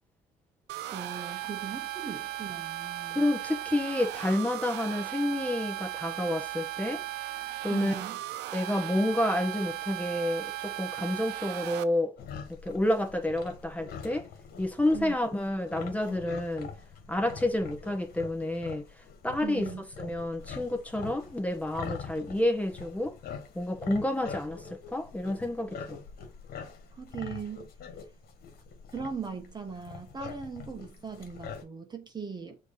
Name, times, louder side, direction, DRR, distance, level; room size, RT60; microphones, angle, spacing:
sound 1, 0.7-11.8, right 15 dB, 80° right, 0.5 m, -37 dB
voice 1, 0.9-3.2 7.7-8.2 14.9-15.2 19.4-19.9 26.9-27.7 28.9-32.6, right 5 dB, 25° right, 1.2 m, -39 dB
voice 2, 3.1-7.0 7.6-8.0 8.5-12.1 12.6-14.3 14.6-16.7 17.1-18.8 19.2-19.7 20.0-23.1 23.5-26.0, left 1 dB, 10° left, 1.2 m, -29 dB
sound 2, 12.2-31.6, left 6 dB, 65° left, 1.6 m, -44 dB
6.2 x 3.1 x 5.2 m
cardioid pair, 110°, 17 cm